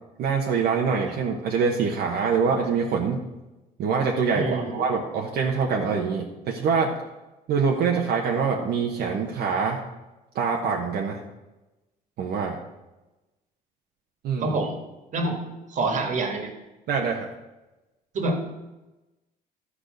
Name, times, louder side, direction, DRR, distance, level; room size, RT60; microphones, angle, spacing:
voice 1, 0.2-3.2 3.8-6.9 7.5-9.8 10.3-11.2 12.2-12.6 14.2-14.6 16.9-17.3, right 5 dB, 70° right, -1 dB, 1.2 m, -24 dB
voice 2, 4.3-4.8 14.4-14.7 15.1-15.4 15.7-16.5 18.1-18.4, right 2 dB, 45° right, 4 dB, 2.0 m, -26 dB
12.5 x 4.9 x 6.6 m, 1.0 s
cardioid pair, 110°, 17 cm